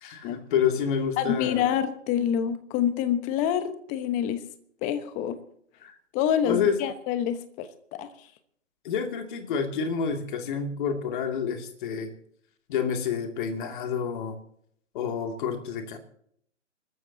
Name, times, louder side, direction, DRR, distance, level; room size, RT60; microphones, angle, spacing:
voice 1, 0.0-1.6 5.8-6.0 6.4-6.8 8.8-12.1 12.7-14.4 14.9-16.0, left 7 dB, 40° left, 5 dB, 2.6 m, -28 dB
voice 2, 1.2-4.4 4.8-5.4 6.1-8.1, left 9 dB, 20° left, 12 dB, 1.1 m, -27 dB
28.5 x 13.5 x 2.8 m, 0.66 s
hypercardioid pair, 140°, 38 cm